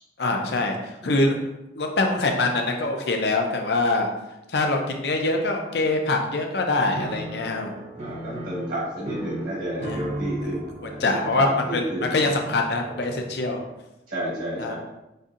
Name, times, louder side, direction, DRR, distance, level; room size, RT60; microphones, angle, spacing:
voice 1, 0.2-0.8 1.0-1.4 1.7-4.1 4.5-7.7 9.8-10.0 10.8-13.6 14.6-14.7, left 2 dB, 65° left, 3 dB, 0.6 m, -24 dB
Piano, 7.0-13.7, right 1 dB, 35° right, 0.5 m, -36 dB
voice 2, 8.0-11.0 11.3-12.1 14.1-14.7, right 1 dB, 70° right, -8 dB, 1.3 m, -30 dB
5.3 x 2.6 x 2.5 m, 0.93 s
head